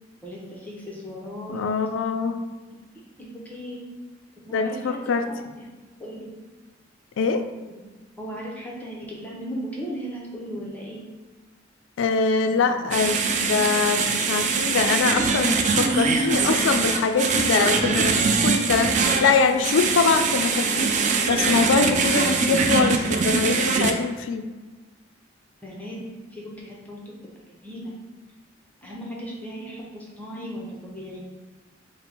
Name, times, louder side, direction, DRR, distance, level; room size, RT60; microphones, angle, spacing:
voice 1, 0.2-1.6 2.1-2.2 3.2-3.8 4.5-5.4 6.0-6.3 7.7-7.8 8.2-11.1 12.5-12.8 25.6-26.0 26.3-27.0 27.6-27.9 28.8-31.3, equal, 10° left, -4 dB, 0.6 m, -36 dB
voice 2, 1.5-2.4 4.5-5.2 7.2-7.4 12.0-20.9 21.3-24.5, left 5 dB, 85° left, 8 dB, 0.3 m, -23 dB
sound 1, 12.9-23.9, right 4 dB, 40° right, 0.3 m, -22 dB
Brass instrument, 18.8-23.2, right 3 dB, 70° right, 0.6 m, -42 dB
4.1 x 2.0 x 4.3 m, 1.3 s
head